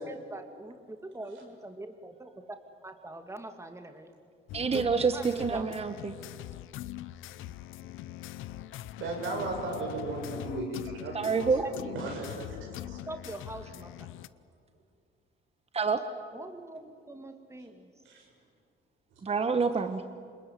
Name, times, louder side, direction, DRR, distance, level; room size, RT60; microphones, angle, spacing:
voice 1, 0.0-2.3 2.8-4.1 4.7-5.7 11.6-11.7 13.1-14.1 16.3-17.9, right 2 dB, 15° right, 6 dB, 2.2 m, -43 dB
sound 1, 4.5-14.3, left 14 dB, 90° left, 0.7 m, -42 dB
voice 2, 4.5-6.2 11.1-11.6 15.7-16.0 19.2-20.0, right 5 dB, 30° right, 8 dB, 1.3 m, -27 dB
voice 3, 9.0-13.0 18.0-18.3, right 3 dB, 90° right, 1 dB, 7.6 m, -36 dB
26.5 x 21.5 x 9.9 m, 2.2 s
cardioid pair, 90°, 20 cm